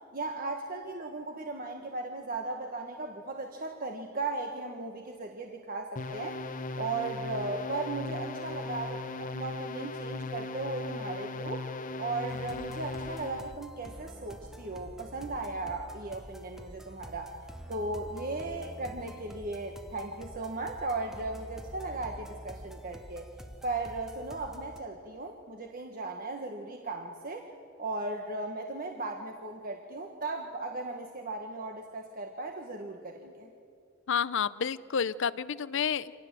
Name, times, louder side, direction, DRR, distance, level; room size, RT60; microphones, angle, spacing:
voice 1, 0.1-6.4 6.8-11.7 12.0-17.4 17.7-23.3 23.6-27.5 27.8-33.5, right 2 dB, 45° right, 3 dB, 1.5 m, -37 dB
sound 1, 6.0-13.5, left 3 dB, 40° left, 1.2 m, -38 dB
sound 2, 12.3-24.8, equal, ahead, 1.1 m, -47 dB
voice 2, 34.1-36.1, left 7 dB, 65° left, 17 dB, 0.6 m, -30 dB
26.0 x 18.5 x 7.6 m, 2.5 s
head